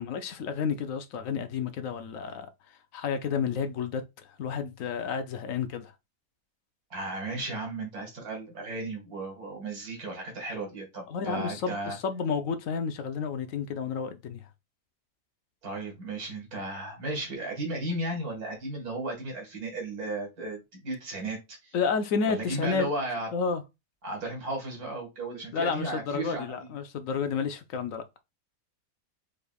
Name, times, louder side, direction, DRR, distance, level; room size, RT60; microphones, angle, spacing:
voice 1, 0.0-2.5 2.9-4.0 4.4-5.9 11.1-14.4 21.7-22.9 23.3-23.6 25.5-28.0, left 6 dB, 70° left, 1.0 m, -30 dB
voice 2, 6.9-12.0 15.6-21.8 22.2-23.3 24.0-26.7, right 2 dB, 85° right, 2.3 m, -35 dB
5.0 x 3.4 x 2.3 m
omnidirectional pair, 1.5 m